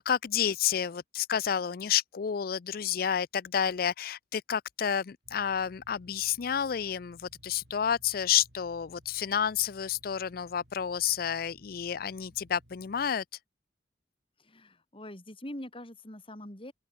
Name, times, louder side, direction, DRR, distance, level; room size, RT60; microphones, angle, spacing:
voice 1, 0.0-13.2, left 8 dB, 55° left, 0.4 m, -30 dB
sound 1, 5.2-13.1, equal, 70° right, 8.0 m, -59 dB
voice 2, 14.4-16.7, left 1 dB, 30° left, 3.6 m, -43 dB
open air
head